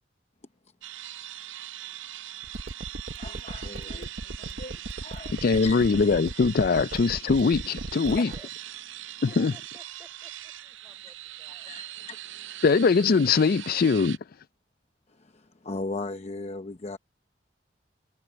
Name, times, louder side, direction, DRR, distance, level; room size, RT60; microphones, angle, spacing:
sound 1, 0.8-14.2, right 14 dB, 85° right, 0.6 m, -41 dB
sound 2, 1.9-2.0 2.3-12.1 12.5-12.6 15.4-15.5, left 4 dB, 90° left, 6.7 m, -64 dB
sound 3, 2.4-8.4, right 2 dB, 55° right, 0.9 m, -36 dB
voice 1, 3.2-4.1 4.4-5.4 5.6-6.1 6.9-7.0 8.1-8.2 11.7-11.8 15.6-17.0, left 3 dB, 35° left, 0.8 m, -37 dB
voice 2, 5.4-8.3 9.4-9.5 12.6-14.2, left 4 dB, 50° left, 0.4 m, -22 dB
voice 3, 8.2-8.6 9.0-12.1, right 1 dB, 10° right, 5.9 m, -57 dB
head